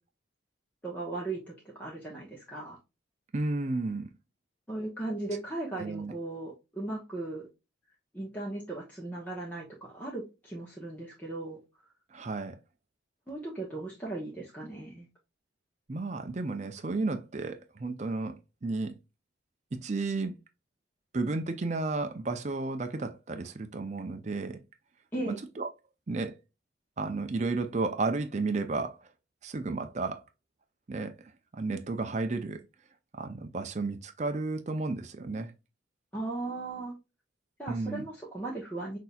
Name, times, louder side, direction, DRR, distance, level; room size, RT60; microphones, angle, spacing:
voice 1, 0.8-2.8 4.7-7.5 8.1-11.6 13.3-15.1 25.1-25.4 36.1-36.9 37.6-39.0, right 2 dB, 10° left, 1.1 m, -37 dB
voice 2, 3.3-4.1 5.8-6.1 12.1-12.6 15.9-18.3 18.6-18.9 19.7-20.4 21.1-24.6 25.3-25.7 26.1-26.4 27.0-29.0 29.4-30.2 30.9-31.2 31.5-32.6 33.1-35.5 37.7-38.0, right 3 dB, 35° right, 0.5 m, -32 dB
6.0 x 2.8 x 2.3 m
head